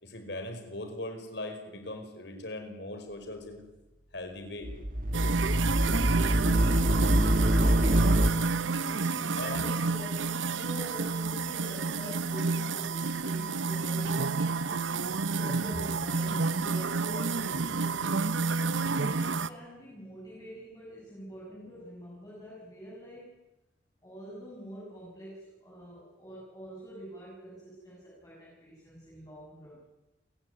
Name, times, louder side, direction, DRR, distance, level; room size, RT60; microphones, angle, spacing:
voice 1, 0.0-3.6 4.1-4.7 9.4-9.7, left 1 dB, 60° left, 6 dB, 5.1 m, -39 dB
sound 1, 4.6-8.3, right 1 dB, 45° right, 1.7 m, -25 dB
sound 2, 5.1-19.5, right 4 dB, 80° right, 1.0 m, -30 dB
voice 2, 9.5-14.6 14.8-23.4 24.0-29.8, equal, 20° left, -6 dB, 7.0 m, -45 dB
29.0 x 16.5 x 9.9 m, 1.0 s
head